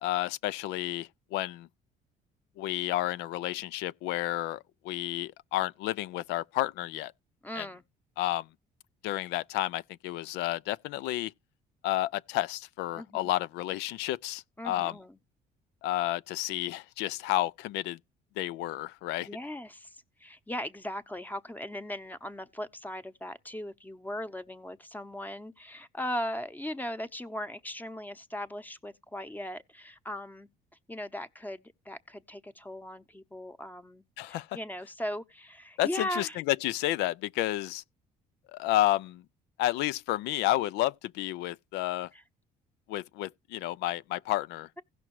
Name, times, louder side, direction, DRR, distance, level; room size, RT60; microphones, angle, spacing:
voice 1, 0.0-1.7 2.6-4.6 4.8-7.1 7.6-7.7 8.2-8.4 9.0-11.3 11.8-14.9 15.8-18.0 18.4-19.3 34.2-34.5 35.8-37.8 38.5-39.2 39.6-42.1 42.9-44.8, left 15 dB, 85° left, 0.4 m, -31 dB
voice 2, 7.4-7.8 12.9-13.3 14.6-15.2 19.3-30.5 30.9-36.4 42.1-42.2, left 1 dB, 10° left, 0.9 m, -38 dB
16.5 x 6.1 x 3.0 m
cardioid pair, 110°, 17 cm